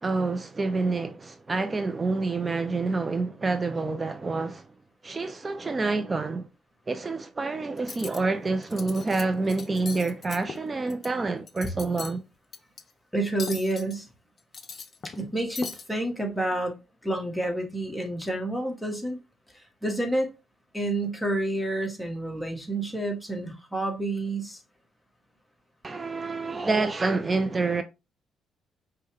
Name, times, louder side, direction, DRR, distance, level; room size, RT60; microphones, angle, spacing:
voice 1, 0.0-4.7 5.0-6.5 6.9-12.2 25.8-27.8, right 3 dB, 25° right, 0.4 m, -27 dB
Cutlery silverware, 7.8-8.2 8.6-9.2 9.5-11.1 11.4-12.2 12.5-12.8 13.4-14.0 14.4-15.3 15.6-15.8, left 5 dB, 40° left, 0.6 m, -39 dB
voice 2, 13.1-14.1 15.0-16.7 17.0-19.2 19.5-20.3 20.7-24.6, right 1 dB, 5° left, 1.2 m, -29 dB
5.3 x 2.2 x 3.3 m
cardioid pair, 90°, 0 cm